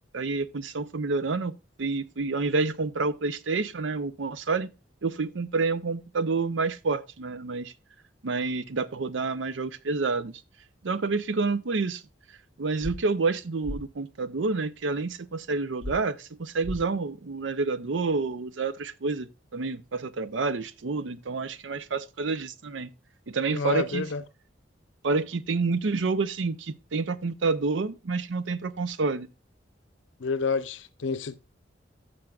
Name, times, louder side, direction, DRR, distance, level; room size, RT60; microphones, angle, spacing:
voice 1, 0.1-1.5 1.8-4.7 5.0-7.7 8.2-10.4 10.8-12.0 12.6-22.9 23.3-24.0 25.0-29.3, right 4 dB, 80° right, 0.6 m, -28 dB
sound 1, 12.8-13.0 13.6-13.8 15.8-16.0 16.6-16.8, left 1 dB, 50° right, 2.4 m, -34 dB
voice 2, 23.5-24.2 30.2-31.4, left 4 dB, 80° left, 0.7 m, -29 dB
14.5 x 6.4 x 2.4 m
head